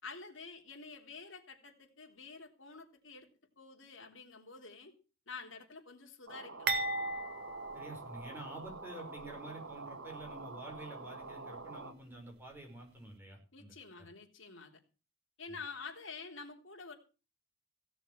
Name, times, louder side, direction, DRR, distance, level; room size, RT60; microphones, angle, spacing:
voice 1, 0.0-3.3 3.6-4.9 5.3-6.7 13.5-14.8 15.4-16.9, left 4 dB, 70° left, 2 dB, 3.5 m, -48 dB
sound 1, 6.3-11.9, right 3 dB, 75° right, 1.9 m, -47 dB
sound 2, 6.7-8.8 9.2-9.3 10.2-10.4, right 2 dB, 55° right, 2.0 m, -37 dB
voice 2, 7.7-14.1 15.5-15.6, right 1 dB, 10° right, 1 dB, 5.6 m, -49 dB
16.5 x 7.0 x 7.6 m, 0.35 s
head